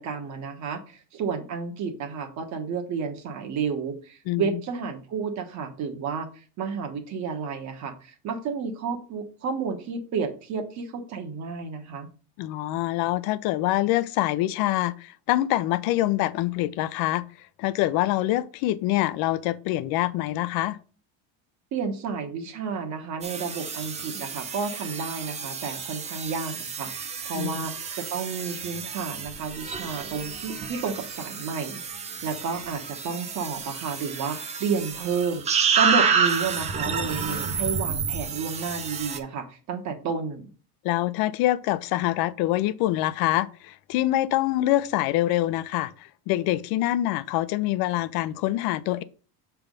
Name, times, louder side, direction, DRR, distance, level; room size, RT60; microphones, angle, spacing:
voice 1, 0.0-12.1 21.7-26.9 27.3-35.4 35.8-40.5, right 5 dB, 40° right, 1.1 m, -31 dB
voice 2, 12.4-17.3 17.6-20.8 27.4-27.5 40.8-45.9 46.3-49.0, left 15 dB, 60° left, 0.5 m, -25 dB
sound 1, 23.2-39.2, right 6 dB, 20° right, 0.3 m, -29 dB
7.0 x 3.5 x 5.1 m
cardioid pair, 160°, 42 cm